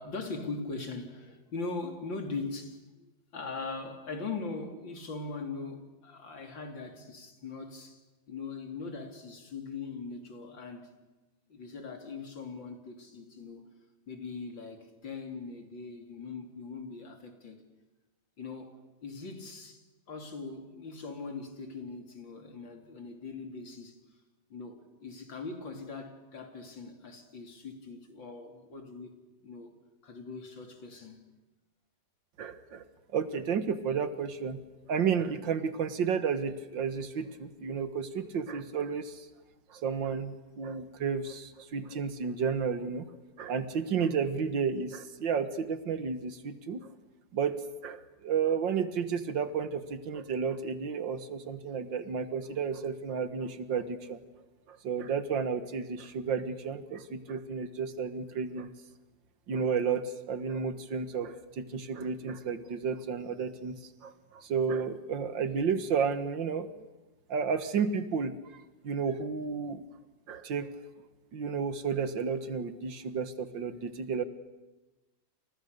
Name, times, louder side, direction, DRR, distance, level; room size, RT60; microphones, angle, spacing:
voice 1, 0.0-8.0 8.3-10.9 11.5-13.7 14.1-17.7 18.4-24.0 24.5-29.1 29.4-29.7 30.0-31.2, left 4 dB, 90° left, 3.9 m, -41 dB
voice 2, 32.4-32.8 33.1-34.6 34.9-39.3 39.7-43.1 43.4-46.9 47.3-54.2 54.7-58.7 59.5-63.8 64.0-66.7 67.3-69.8 70.3-70.7 71.3-74.2, right 6 dB, 80° right, 2.2 m, -32 dB
29.0 x 28.5 x 6.8 m
omnidirectional pair, 2.0 m